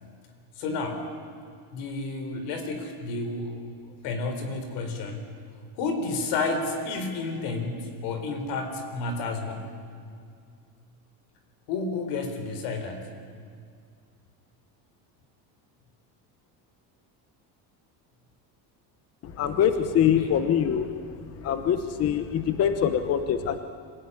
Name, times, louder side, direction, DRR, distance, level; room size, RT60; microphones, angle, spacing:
voice 1, 0.6-1.1 1.7-5.2 5.8-9.7 11.7-13.1 20.2-20.3, left 3 dB, 85° left, 6 dB, 4.1 m, -31 dB
voice 2, 19.2-20.9 21.4-23.6, left 9 dB, 35° left, 9 dB, 1.0 m, -24 dB
25.0 x 17.0 x 9.8 m, 2.2 s
cardioid pair, 175°, 40 cm